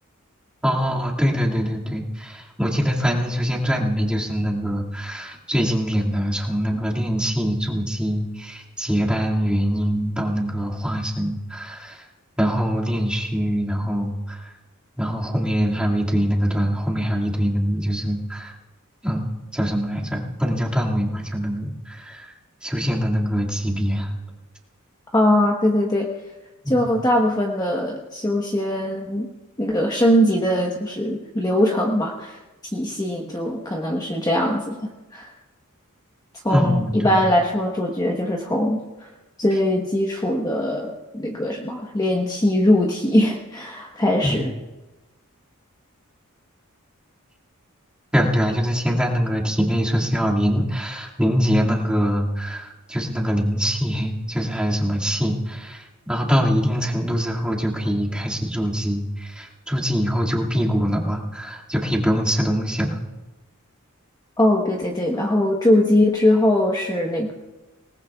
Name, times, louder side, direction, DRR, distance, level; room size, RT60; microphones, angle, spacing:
voice 1, 0.6-12.0 12.4-14.5 15.0-18.5 19.0-22.3 22.6-24.1 26.6-26.9 36.5-37.2 44.2-44.4 48.1-63.0, equal, 5° right, -4 dB, 2.2 m, -23 dB
voice 2, 25.1-26.1 26.7-29.3 29.6-32.4 32.7-34.8 35.1-35.3 36.4-39.1 39.4-44.5 64.4-67.3, left 1 dB, 20° left, -1 dB, 1.2 m, -21 dB
27.0 x 19.0 x 2.4 m, 1.1 s
head